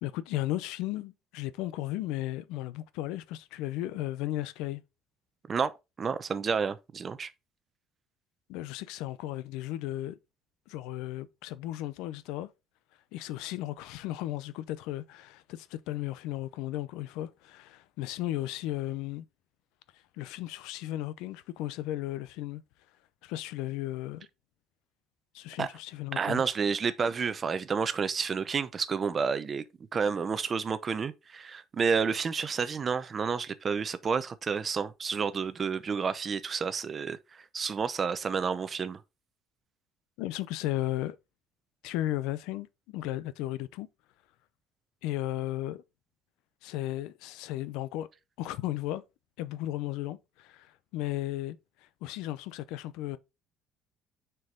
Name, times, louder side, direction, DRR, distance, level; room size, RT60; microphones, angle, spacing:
voice 1, 0.0-4.8 8.5-10.2 10.7-12.5 13.1-19.3 20.2-22.6 23.2-24.3 25.3-26.4 40.2-41.2 41.8-43.9 45.0-45.8 46.6-48.1 48.4-49.0 49.4-51.6 52.0-53.2, left 15 dB, 85° left, 0.5 m, -35 dB
voice 2, 6.0-7.3 25.6-25.7 26.1-29.6 29.9-37.2 37.5-39.0, right 5 dB, 30° right, 0.6 m, -30 dB
6.2 x 4.6 x 3.7 m
cardioid pair, 135°, 0 cm